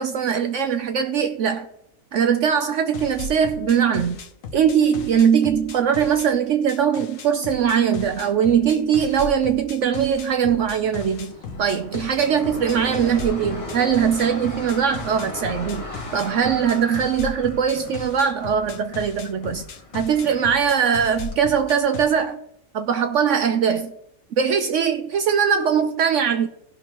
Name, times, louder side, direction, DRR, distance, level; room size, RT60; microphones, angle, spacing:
voice 1, 0.0-1.7 2.1-4.2 4.5-19.6 19.9-22.4 22.7-23.9 24.4-26.5, right 7 dB, 65° right, 0.9 m, -21 dB
sound 1, 2.9-6.3 6.7-22.1, left 4 dB, 70° left, 1.2 m, -36 dB
sound 2, 9.9-21.4, left 1 dB, 25° left, 1.9 m, -38 dB
16.5 x 6.1 x 3.0 m
omnidirectional pair, 1.4 m